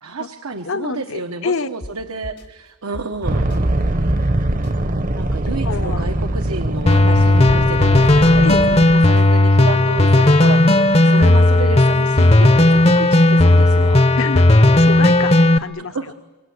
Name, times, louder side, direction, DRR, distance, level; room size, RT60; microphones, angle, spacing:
voice 1, 0.0-3.4 5.1-14.1 15.8-16.1, right 3 dB, 80° right, 6 dB, 1.2 m, -30 dB
voice 2, 0.6-1.7 5.6-6.0 8.4-8.6 14.2-14.5 14.8-16.1, left 4 dB, 65° left, 11 dB, 1.0 m, -26 dB
sound 1, 1.8-1.9 2.2-2.4 2.9-3.6 4.1-4.2 4.5-4.7 5.2-6.1 6.6-7.0 7.5-8.1 8.9-9.2, equal, 90° left, 3.0 m, -34 dB
sound 2, 3.2-8.9, right 1 dB, 35° right, 1.0 m, -22 dB
sound 3, 6.9-15.6, left 1 dB, 25° left, 0.8 m, -13 dB
27.0 x 24.0 x 8.0 m, 1.3 s
head